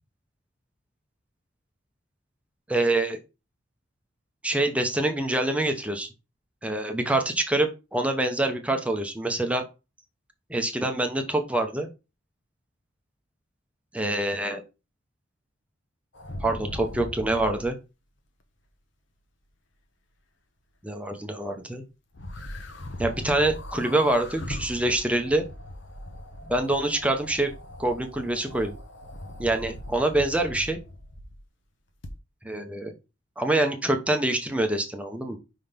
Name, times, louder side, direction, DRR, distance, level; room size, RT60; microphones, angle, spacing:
voice 1, 2.7-3.2 4.4-6.1 6.6-9.7 10.5-11.9 13.9-14.6 16.4-17.8 20.8-21.8 23.0-25.4 26.5-27.5 27.8-28.7 29.4-30.8 32.4-32.9 33.4-35.4, right 1 dB, 5° right, 5 dB, 0.9 m, -25 dB
sound 1, 16.1-17.7 22.1-31.4 32.0-32.1, left 1 dB, 65° left, 1.2 m, -39 dB
5.6 x 3.9 x 5.1 m, 0.27 s
head